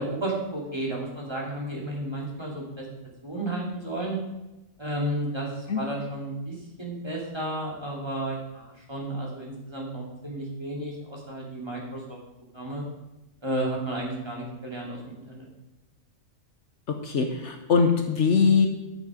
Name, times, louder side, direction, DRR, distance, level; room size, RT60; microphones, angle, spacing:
voice 1, 0.0-2.9 3.2-4.2 4.8-12.2 12.5-12.8 13.4-15.5, right 1 dB, 20° right, -3 dB, 2.5 m, -32 dB
voice 2, 17.0-18.7, left 5 dB, 65° left, 5 dB, 1.2 m, -21 dB
11.5 x 6.6 x 5.0 m, 0.97 s
omnidirectional pair, 1.4 m